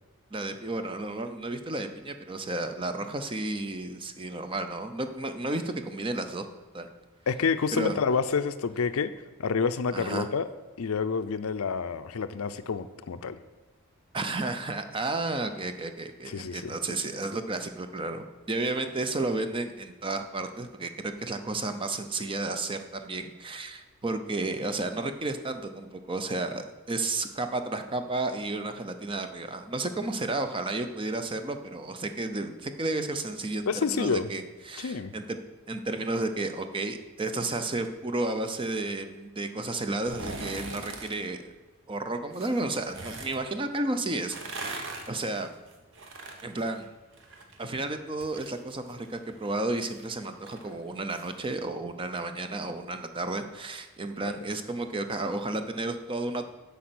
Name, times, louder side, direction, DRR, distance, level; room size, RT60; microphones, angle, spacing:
voice 1, 0.3-6.4 6.7-6.9 7.7-8.0 9.9-10.3 14.1-35.4 35.7-41.5 41.9-44.8 45.1-45.5 46.4-46.9 47.6-56.5, right 2 dB, 25° right, 8 dB, 0.6 m, -32 dB
voice 2, 7.3-9.1 9.4-10.5 10.8-13.4 16.3-16.7 33.7-34.3 34.8-35.1 54.2-54.4, left 5 dB, 75° left, 12 dB, 0.5 m, -28 dB
sound 1, 39.9-41.2 42.3-43.4 44.1-47.6 47.9-51.3 51.7-51.8, right 2 dB, 60° right, 1.1 m, -41 dB
8.3 x 5.4 x 7.8 m, 1.2 s
head